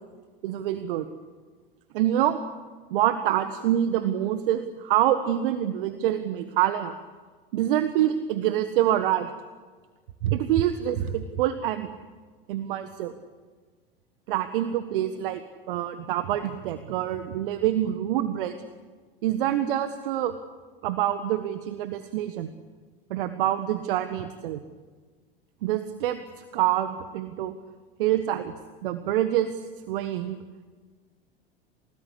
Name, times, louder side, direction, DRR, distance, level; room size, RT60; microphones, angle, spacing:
voice 1, 0.4-1.1 1.9-2.4 2.9-7.0 7.5-9.3 10.2-11.9 12.5-13.1 14.3-18.6 19.2-20.3 20.8-22.5 23.1-24.6 25.6-27.5 28.0-28.5 28.8-29.6 29.9-30.4, right 12 dB, 65° right, 10 dB, 1.6 m, -26 dB
30.0 x 19.0 x 8.5 m, 1.5 s
hypercardioid pair, 85°, 29 cm